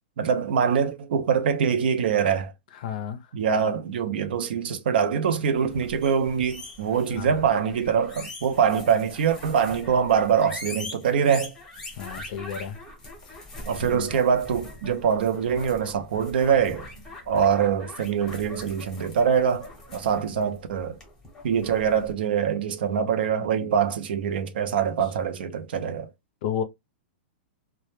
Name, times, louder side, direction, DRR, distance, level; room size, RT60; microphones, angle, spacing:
voice 1, 0.2-2.5 3.3-11.5 13.7-16.8 17.3-21.0 21.4-26.1, right 7 dB, 65° right, 0.5 m, -24 dB
voice 2, 2.8-3.2 7.1-7.4 12.0-12.8 13.3-13.4 13.9-14.1 26.4-26.6, left 8 dB, 50° left, 0.5 m, -32 dB
sound 1, 5.6-22.1, left 2 dB, 10° left, 0.8 m, -42 dB
2.2 x 2.1 x 3.0 m
supercardioid pair, 170°, 6 cm